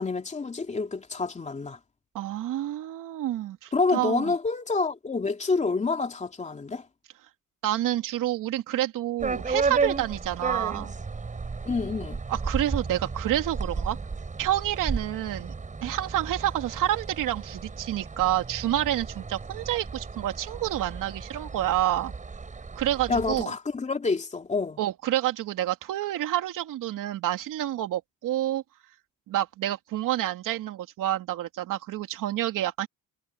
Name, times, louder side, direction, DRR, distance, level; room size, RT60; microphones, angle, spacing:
voice 1, 0.0-1.8 3.7-6.9 11.6-12.2 23.1-24.8, left 4 dB, 20° left, 3.0 m, -28 dB
voice 2, 2.1-4.3 7.6-10.9 12.3-14.0 14.4-15.5 15.8-22.1 22.8-23.5 24.8-28.6 29.3-32.9, right 13 dB, 75° right, 2.9 m, -28 dB
sound 1, 9.2-23.4, right 4 dB, 25° right, 7.0 m, -33 dB
cardioid pair, 135°, 32 cm